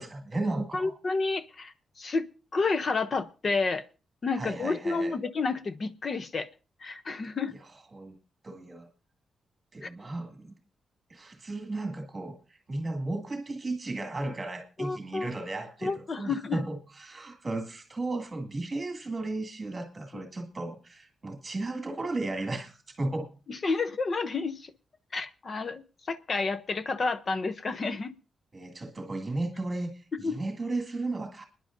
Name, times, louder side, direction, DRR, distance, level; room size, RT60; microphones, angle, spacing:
voice 1, 0.0-1.0 4.3-5.2 7.5-7.6 7.9-8.2 8.4-8.9 9.7-10.5 11.1-23.3 28.5-31.5, right 2 dB, 20° right, 2.2 m, -35 dB
voice 2, 0.7-2.3 2.5-3.9 4.2-6.5 6.8-7.5 9.8-9.9 14.8-15.3 15.8-16.6 23.5-24.7 25.1-28.1 30.2-30.4, left 4 dB, 35° left, 0.7 m, -30 dB
30.0 x 10.5 x 2.6 m
wide cardioid pair, 180°, 0 cm